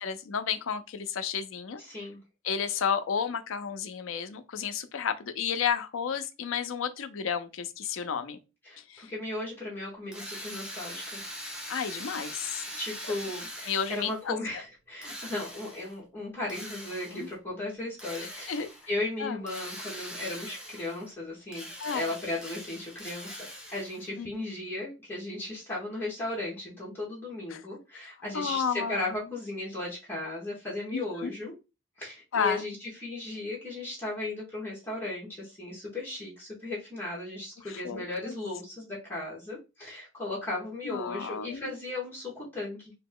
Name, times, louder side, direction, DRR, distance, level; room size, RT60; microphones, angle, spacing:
voice 1, 0.0-1.8 2.4-8.4 8.9-9.1 11.7-12.6 13.7-14.4 17.1-17.3 18.5-18.7 19.2-19.4 21.8-22.1 24.2-24.4 27.5-27.6 28.3-29.2 30.9-31.3 32.3-32.6 37.7-38.3 40.8-41.7, left 7 dB, 85° left, 0.5 m, -32 dB
voice 2, 1.8-2.2 8.6-11.2 12.7-23.4 23.7-31.5 32.0-42.9, left 2 dB, 10° left, 1.4 m, -36 dB
Drill, 10.1-14.3 15.0-16.0 16.5-17.3 18.0-18.9 19.5-21.1 21.5-24.1, equal, 5° right, 0.7 m, -42 dB
3.0 x 2.8 x 3.6 m
head